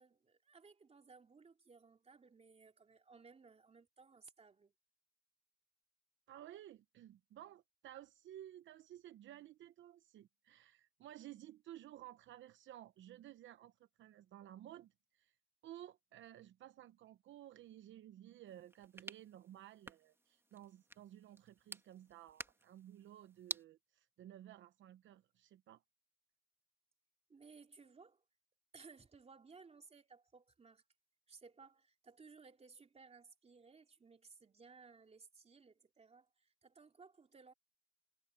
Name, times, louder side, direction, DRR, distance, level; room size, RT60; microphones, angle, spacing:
voice 1, 0.0-4.7 27.3-28.2 28.7-30.8 31.3-37.5, right 4 dB, 30° right, 2.9 m, -60 dB
voice 2, 6.3-15.3 15.6-25.8, right 12 dB, 75° right, 0.8 m, -55 dB
sound 1, 18.5-23.6, right 2 dB, 10° right, 1.9 m, -51 dB
cardioid pair, 90°, 20 cm